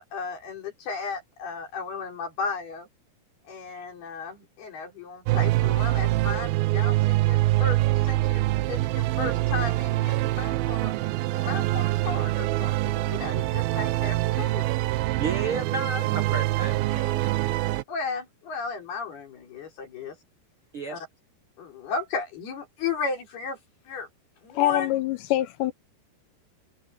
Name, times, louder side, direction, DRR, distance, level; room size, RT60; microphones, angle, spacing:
voice 1, 0.0-2.9 3.5-10.9 11.3-14.7 17.9-20.2 20.9-21.1 21.6-23.6 23.9-24.1 24.4-24.9, left 5 dB, 65° left, 7.1 m, -34 dB
sound 1, 5.3-17.8, right 17 dB, 75° right, 2.2 m, -25 dB
voice 2, 15.2-17.4 20.7-21.0, right 4 dB, 55° right, 1.5 m, -32 dB
voice 3, 24.5-25.7, left 14 dB, 85° left, 3.2 m, -24 dB
omnidirectional pair, 4.9 m